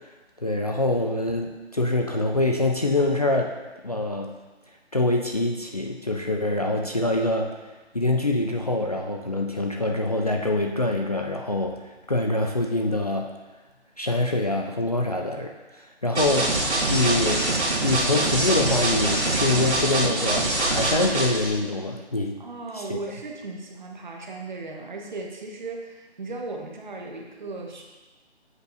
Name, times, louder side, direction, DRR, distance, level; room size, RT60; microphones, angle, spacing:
voice 1, 0.4-3.5 3.8-4.3 4.9-7.5 7.9-11.8 12.1-13.3 14.0-16.5 16.9-17.4 17.8-22.4 22.7-23.0, left 2 dB, 40° left, 1 dB, 0.4 m, -25 dB
sound 1, 16.2-21.5, right 2 dB, 75° right, 1.8 m, -24 dB
voice 2, 22.4-27.8, right 3 dB, 45° right, 1 dB, 1.1 m, -36 dB
8.0 x 6.5 x 2.7 m, 1.2 s
figure-of-eight pair, 160°, 33 cm